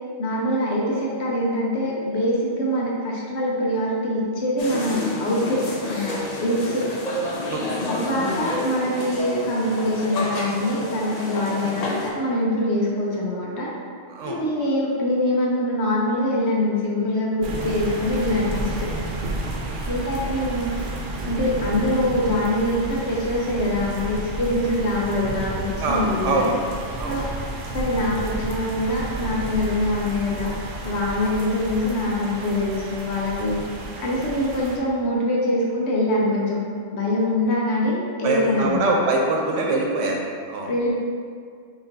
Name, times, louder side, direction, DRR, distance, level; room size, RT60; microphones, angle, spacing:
voice 1, 0.2-6.9 7.9-13.7 14.3-18.9 19.9-20.7 21.2-26.4 27.0-27.2 27.7-30.5 30.8-33.6 34.0-36.7 36.9-39.0 40.6-41.0, left 1 dB, 70° left, -3 dB, 1.1 m, -24 dB
sound 1, 4.6-12.1, left 1 dB, 45° left, 0.6 m, -30 dB
voice 2, 7.4-7.8 14.1-14.4 19.6-20.0 25.8-26.6 27.0-27.2 38.2-40.7, right 2 dB, 90° right, 0 dB, 1.0 m, -24 dB
sound 2, 17.4-34.8, right 2 dB, 55° right, 0.7 m, -31 dB
6.1 x 3.0 x 2.7 m, 2.2 s
omnidirectional pair, 1.2 m